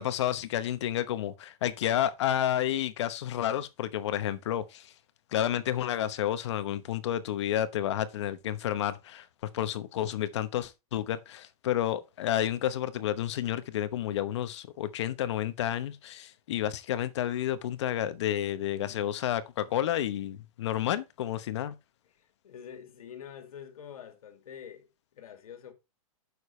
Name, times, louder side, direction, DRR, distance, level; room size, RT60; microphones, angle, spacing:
voice 1, 0.0-4.9 5.3-9.3 9.5-21.7, left 11 dB, 50° left, 1.0 m, -30 dB
voice 2, 18.9-19.2 19.6-19.8 22.1-25.7, left 8 dB, 75° left, 2.4 m, -47 dB
9.3 x 6.8 x 3.2 m
supercardioid pair, 170°, 19 cm